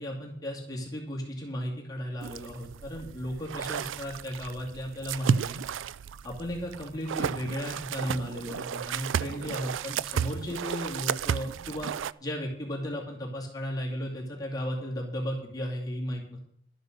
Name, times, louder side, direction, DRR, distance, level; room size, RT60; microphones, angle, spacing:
voice 1, 0.0-5.6 6.2-11.9 12.2-16.4, equal, 20° left, -2 dB, 2.4 m, -35 dB
sound 1, 2.2-12.1, right 7 dB, 90° right, 0.4 m, -33 dB
12.0 x 9.4 x 5.2 m, 0.68 s
head